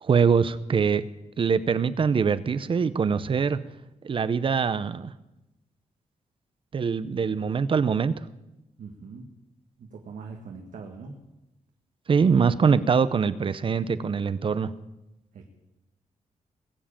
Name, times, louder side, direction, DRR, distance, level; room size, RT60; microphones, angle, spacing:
voice 1, 0.0-1.0 1.4-3.6 4.0-5.1 6.7-8.1 12.1-14.7, right 6 dB, 40° right, 15 dB, 0.6 m, -23 dB
voice 2, 8.8-9.3 9.8-11.1 15.3-15.5, right 4 dB, 90° right, 2 dB, 1.8 m, -42 dB
20.5 x 7.4 x 8.7 m, 0.96 s
wide cardioid pair, 135°, 13 cm